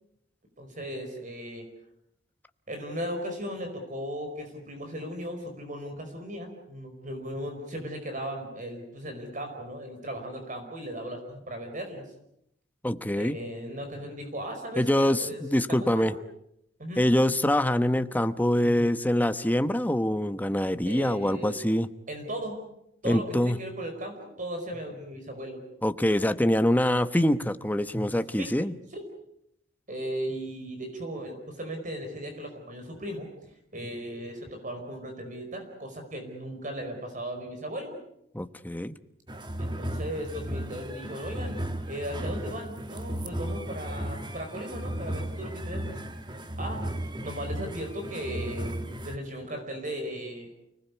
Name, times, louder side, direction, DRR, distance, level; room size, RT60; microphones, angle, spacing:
voice 1, 0.6-1.6 2.7-12.0 13.1-15.4 15.8-16.2 16.8-17.0 20.9-21.6 22.1-22.6 23.0-25.6 28.4-28.5 28.9-29.0 29.9-33.3 33.7-37.9 39.6-41.6 41.9-46.0 46.6-46.8 47.2-48.8 49.0-50.5, equal, 45° right, 5 dB, 4.9 m, -37 dB
voice 2, 12.8-13.3 14.8-16.1 17.0-21.9 23.0-23.6 25.8-28.7 38.3-38.9, left 1 dB, 10° left, 11 dB, 1.0 m, -25 dB
sound 1, 39.3-49.2, right 1 dB, 25° right, 1.6 m, -35 dB
30.0 x 19.5 x 8.3 m, 0.78 s
head